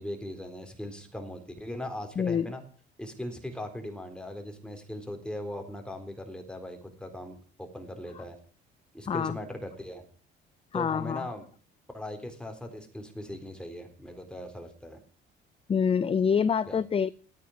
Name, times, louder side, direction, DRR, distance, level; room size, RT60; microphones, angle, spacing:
voice 1, 0.0-2.6 3.0-8.4 8.9-10.0 10.7-11.5 11.9-15.0 16.7-16.8, left 1 dB, 5° left, 3.8 m, -39 dB
voice 2, 2.2-2.5 9.1-9.4 10.7-11.3 15.7-17.1, left 6 dB, 25° left, 0.5 m, -26 dB
13.0 x 9.5 x 6.4 m
cardioid pair, 85°, 21 cm